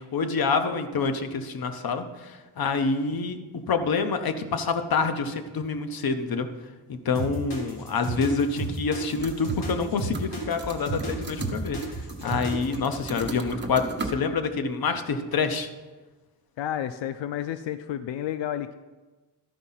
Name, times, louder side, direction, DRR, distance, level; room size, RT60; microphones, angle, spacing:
voice 1, 0.0-6.5 6.9-15.7, left 4 dB, 55° left, 8 dB, 0.9 m, -27 dB
sound 1, 7.1-12.8, right 3 dB, 70° left, 2.6 m, -32 dB
sound 2, 9.1-9.9 10.1-14.1, right 3 dB, 25° right, 1.1 m, -36 dB
voice 2, 16.6-18.7, left 10 dB, 90° left, 11 dB, 0.5 m, -31 dB
13.0 x 5.1 x 5.6 m, 1.2 s
wide cardioid pair, 130°, 43 cm